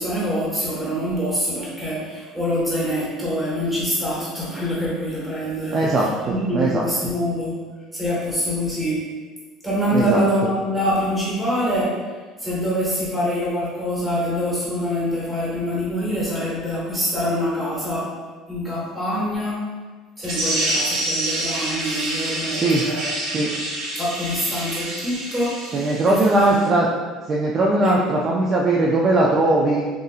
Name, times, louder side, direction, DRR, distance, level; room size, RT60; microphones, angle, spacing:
voice 1, 0.0-7.5 7.9-9.0 9.6-11.9 12.4-18.1 18.5-19.6 20.2-23.1 24.0-25.6 26.1-26.6 27.8-28.0, equal, 5° right, -8 dB, 1.4 m, -25 dB
voice 2, 5.7-6.9 9.9-10.2 22.5-22.8 23.3-23.5 25.7-26.9 27.3-29.9, right 2 dB, 30° right, -3 dB, 0.4 m, -20 dB
sound 1, 20.2-26.7, right 1 dB, 65° right, 1.4 m, -27 dB
6.5 x 2.5 x 2.4 m, 1.4 s
cardioid pair, 165°, 0 cm